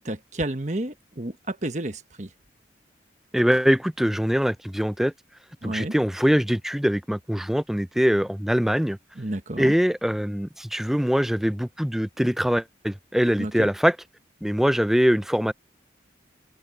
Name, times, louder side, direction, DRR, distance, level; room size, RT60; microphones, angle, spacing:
voice 1, 0.0-2.3 5.6-5.9 9.1-9.7 13.4-13.7, right 1 dB, 40° right, 1.3 m, -31 dB
voice 2, 3.3-5.1 5.6-9.0 9.6-13.9 14.4-15.5, equal, ahead, 0.4 m, -23 dB
open air
head